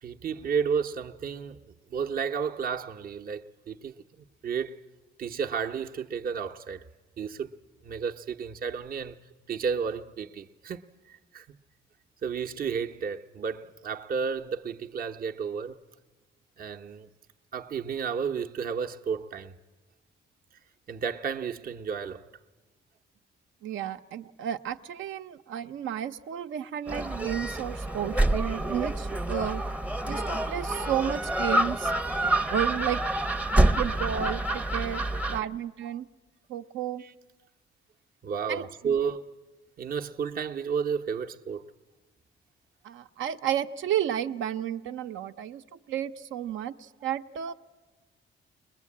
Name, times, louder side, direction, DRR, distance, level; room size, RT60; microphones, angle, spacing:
voice 1, 0.0-1.6 1.9-3.9 4.4-4.8 5.2-6.9 7.2-7.5 7.8-9.2 9.5-11.6 12.2-15.8 16.6-17.1 17.5-19.6 20.9-22.3 37.0-37.1 38.2-39.3 39.8-41.6, right 6 dB, 45° right, 0.8 m, -32 dB
voice 2, 23.6-29.6 30.1-31.9 32.5-33.0 33.5-35.0 35.3-36.1 36.5-37.0 38.5-39.0 42.8-47.5, right 10 dB, 75° right, 0.8 m, -32 dB
Gull seagull, 26.9-35.4, right 1 dB, 5° right, 0.6 m, -27 dB
21.5 x 20.5 x 8.5 m
cardioid pair, 90°, 20 cm